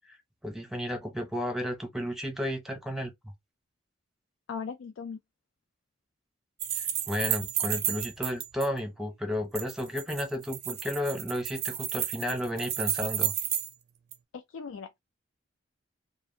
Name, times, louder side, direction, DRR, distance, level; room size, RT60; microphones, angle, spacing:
voice 1, 0.4-3.3 7.1-13.3, left 1 dB, ahead, 0.7 m, -33 dB
voice 2, 4.5-5.2 14.3-15.0, left 6 dB, 85° left, 0.3 m, -38 dB
sound 1, 6.6-8.7 9.5-13.7 14.1-14.2, right 10 dB, 50° right, 0.4 m, -32 dB
2.6 x 2.5 x 2.5 m
head